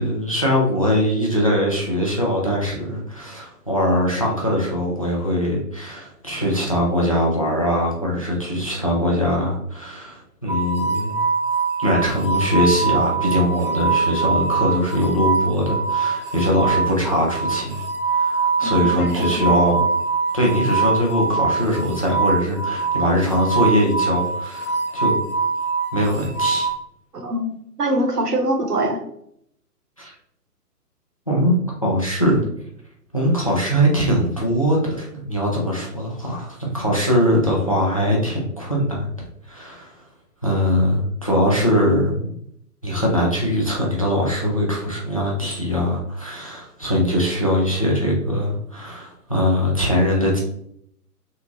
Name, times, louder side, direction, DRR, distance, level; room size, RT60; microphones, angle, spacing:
voice 1, 0.0-11.2 11.8-17.8 18.1-19.8 20.3-25.2 25.9-26.7 30.0-30.1 31.3-32.4 33.1-39.1 39.5-39.9 40.4-42.3 42.8-50.4, equal, 25° left, -3 dB, 0.4 m, -21 dB
sound 1, 10.5-26.7, right 4 dB, 35° right, 0.7 m, -23 dB
voice 2, 18.6-19.4 27.1-27.5 27.8-29.0, right 1 dB, 75° right, 3 dB, 1.0 m, -23 dB
3.6 x 2.5 x 2.8 m, 0.71 s
figure-of-eight pair, 130°, 47 cm